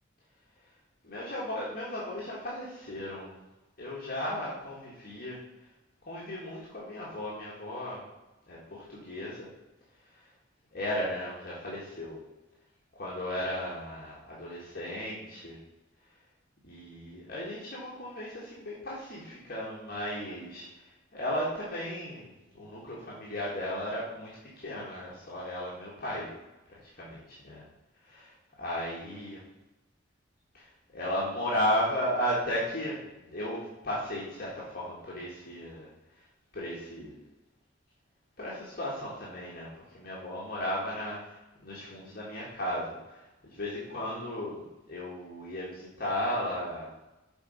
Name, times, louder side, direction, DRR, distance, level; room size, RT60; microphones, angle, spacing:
voice 1, 1.0-3.3 3.8-5.4 6.1-8.0 8.5-9.5 10.1-10.2 10.7-12.2 12.9-15.6 16.6-20.7 21.1-24.3 24.6-26.3 26.7-27.2 27.5-27.6 28.1-28.3 28.6-29.4 30.5-30.7 30.9-35.9 36.5-37.2 38.4-47.0, equal, 50° left, -6 dB, 1.6 m, -35 dB
7.1 x 4.6 x 5.2 m, 1.0 s
head